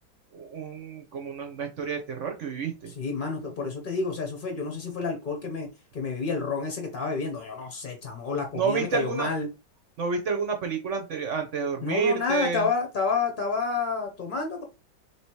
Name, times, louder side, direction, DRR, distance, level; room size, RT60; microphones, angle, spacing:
voice 1, 0.3-2.9 8.5-9.3 10.0-12.7, right 5 dB, 55° right, 5 dB, 0.8 m, -29 dB
voice 2, 3.0-5.7 5.9-9.5 11.8-14.6, left 4 dB, 50° left, 3 dB, 0.6 m, -29 dB
3.3 x 3.0 x 4.5 m, 0.28 s
omnidirectional pair, 2.1 m